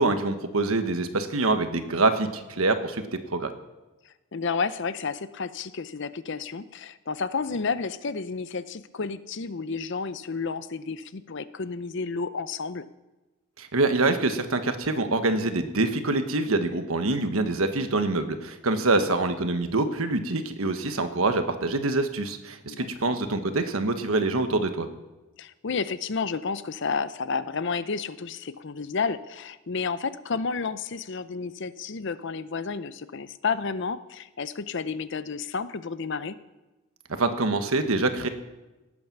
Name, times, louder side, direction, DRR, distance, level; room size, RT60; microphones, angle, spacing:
voice 1, 0.0-3.0 3.3-3.5 13.6-24.9 37.2-38.3, right 2 dB, 85° right, 8 dB, 1.3 m, -25 dB
voice 2, 4.3-12.8 18.9-19.2 22.7-23.2 25.4-36.4, left 5 dB, 55° left, 14 dB, 0.6 m, -31 dB
18.5 x 8.8 x 6.0 m, 1.1 s
head